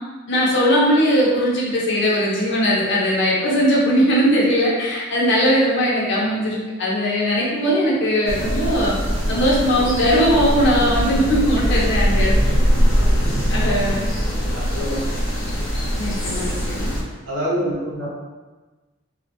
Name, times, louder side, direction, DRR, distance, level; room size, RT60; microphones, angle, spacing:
voice 1, 0.3-8.9 9.3-12.5 13.5-14.1 16.0-16.9, equal, 65° left, -4 dB, 0.6 m, -19 dB
sound 1, 8.3-17.0, equal, 90° left, 0.8 m, -21 dB
voice 2, 14.5-15.1 17.3-18.1, equal, 70° right, -7 dB, 0.9 m, -26 dB
2.4 x 2.1 x 2.7 m, 1.2 s
head